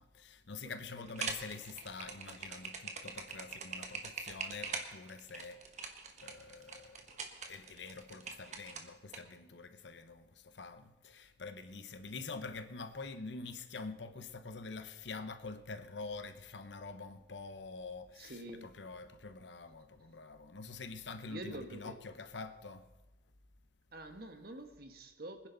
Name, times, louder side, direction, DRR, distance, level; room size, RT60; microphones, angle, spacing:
voice 1, 0.0-5.6 6.2-7.1 7.5-22.9, left 4 dB, 85° left, 1.0 m, -46 dB
sound 1, 1.1-9.2, right 4 dB, 40° right, 1.3 m, -43 dB
voice 2, 18.2-18.7 21.3-21.9 23.9-25.5, right 1 dB, 60° right, 1.4 m, -46 dB
24.0 x 10.5 x 4.0 m
head